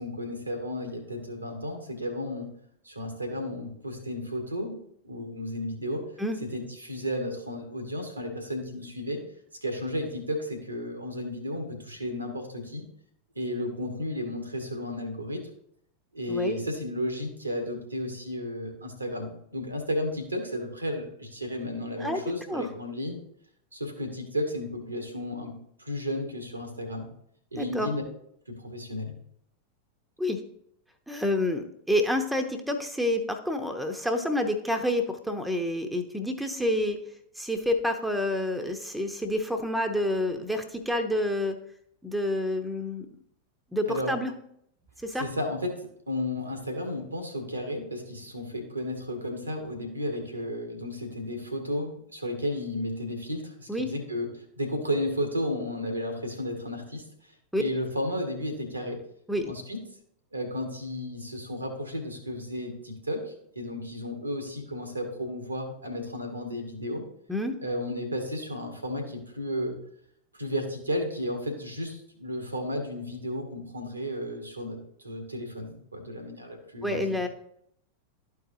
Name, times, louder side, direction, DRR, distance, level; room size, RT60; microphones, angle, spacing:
voice 1, 0.0-2.5 2.8-4.8 5.0-6.0 6.4-9.2 9.6-12.9 13.3-15.4 16.1-23.2 23.7-27.1 27.5-28.0 28.5-29.1 43.9-44.1 45.2-45.7 46.1-54.3 54.6-57.1 57.6-59.0 59.5-59.8 60.3-67.0 67.6-69.8 70.3-77.3, left 1 dB, 85° right, 4 dB, 1.5 m, -33 dB
voice 2, 16.3-16.6 22.0-22.2 22.5-22.7 27.6-27.9 30.2-30.4 31.1-37.0 37.4-41.6 42.0-43.1 43.7-44.3 45.0-45.3 53.7-53.9 57.5-57.6 59.3-59.5 67.3-67.6 76.8-77.3, left 1 dB, 5° right, 6 dB, 0.8 m, -28 dB
12.5 x 4.7 x 2.8 m, 0.69 s
figure-of-eight pair, 90°, 0 cm